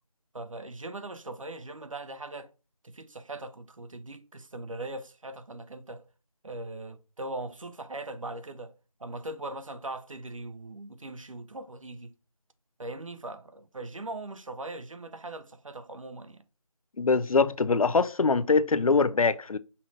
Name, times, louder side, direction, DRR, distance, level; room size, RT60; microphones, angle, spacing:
voice 1, 0.3-2.5 2.8-6.0 6.4-8.7 9.0-12.1 12.8-16.4, right 2 dB, 65° right, 0.7 m, -40 dB
voice 2, 17.0-19.6, left 4 dB, 75° left, 0.5 m, -23 dB
5.5 x 2.6 x 3.2 m
figure-of-eight pair, 175°, 18 cm